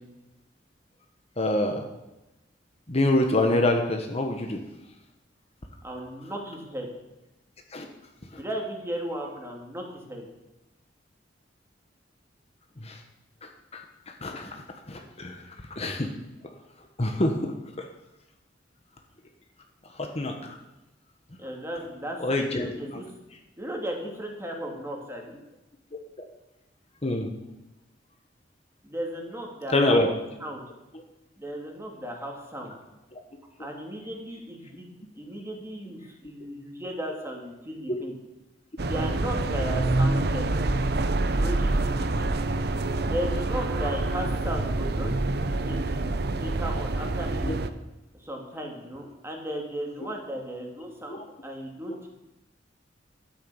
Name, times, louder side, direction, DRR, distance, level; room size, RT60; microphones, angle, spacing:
voice 1, 1.4-1.8 2.9-4.6 7.7-7.9 12.8-13.0 13.7-13.8 14.2-14.6 14.9-15.4 15.8-16.1 17.0-17.8 20.0-20.5 22.2-22.7 27.0-27.3 29.7-30.1 37.9-38.0 47.4-47.5 50.0-50.1 51.1-51.2, left 1 dB, 35° left, 4 dB, 1.3 m, -25 dB
voice 2, 5.8-6.9 8.4-10.3 21.4-23.1 23.6-25.4 28.8-30.1 30.4-30.6 31.4-32.8 33.6-34.9 35.2-38.2 38.8-40.5 41.3-42.3 43.0-47.6 48.1-52.0, equal, 15° right, 0 dB, 2.7 m, -36 dB
sound 1, 38.8-47.7, right 2 dB, 60° right, 0.8 m, -26 dB
13.0 x 9.5 x 7.1 m, 0.98 s
head